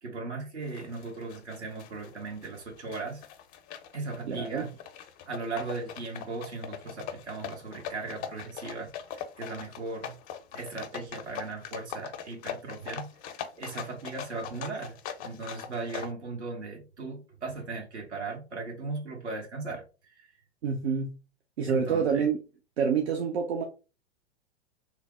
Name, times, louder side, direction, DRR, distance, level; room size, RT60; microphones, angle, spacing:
voice 1, 0.0-3.2 3.9-4.7 5.3-10.2 10.5-13.1 13.6-20.3 21.7-22.3, right 3 dB, 85° right, 1.4 m, -38 dB
sound 1, 0.6-16.1, left 9 dB, 30° left, 0.4 m, -41 dB
voice 2, 4.3-4.7 20.6-21.2 21.6-22.3 22.8-23.6, right 6 dB, 65° right, 0.7 m, -27 dB
3.2 x 2.0 x 3.5 m
hypercardioid pair, 105°, 34 cm